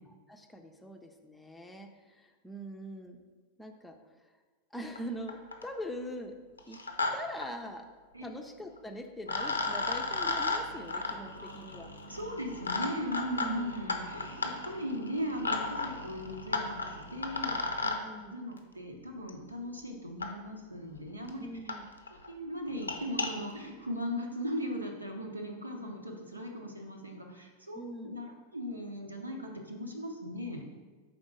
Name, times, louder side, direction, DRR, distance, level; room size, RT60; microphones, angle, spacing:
voice 1, 0.1-3.2 3.6-4.3 4.7-6.3 6.7-6.8 7.1-7.8 8.2-11.9 13.4-13.7 18.0-18.3 21.4-21.9 27.7-28.2, equal, 5° left, 4 dB, 0.5 m, -43 dB
sound 1, 4.9-5.0 5.3-5.7 6.6-7.1 7.4-7.5 8.8-8.9 9.3-18.0 19.3-19.4 20.2-20.3 21.0-21.1 21.3-21.4 21.7-21.8 22.1-22.3 22.7-23.3, left 3 dB, 80° left, 0.6 m, -34 dB
voice 2, 12.1-17.9 18.3-21.5 22.2-30.6, equal, 85° right, 1 dB, 0.8 m, -38 dB
5.2 x 3.7 x 4.9 m, 1.3 s
figure-of-eight pair, 90°, 0 cm